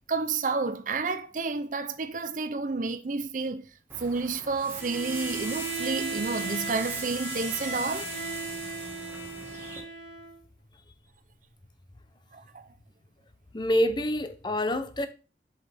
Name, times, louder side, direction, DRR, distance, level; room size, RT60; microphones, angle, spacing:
voice 1, 0.1-3.7 4.0-8.1 12.3-12.7, right 4 dB, 45° right, 0.6 m, -30 dB
sound 1, 3.9-9.8, right 2 dB, 15° right, 1.9 m, -39 dB
Bowed string instrument, 4.7-10.4, right 4 dB, 85° left, 1.9 m, -37 dB
voice 2, 13.5-15.1, equal, 25° left, 0.6 m, -26 dB
7.6 x 5.5 x 3.4 m
head